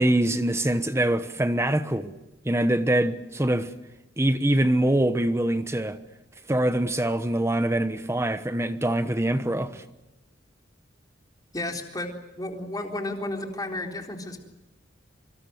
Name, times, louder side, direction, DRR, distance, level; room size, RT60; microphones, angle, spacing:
voice 1, 0.0-2.1 2.4-3.7 4.2-6.0 6.5-9.8, right 1 dB, 15° right, 1.1 m, -24 dB
voice 2, 11.5-14.4, left 1 dB, 20° left, 3.9 m, -33 dB
25.5 x 25.5 x 7.9 m
head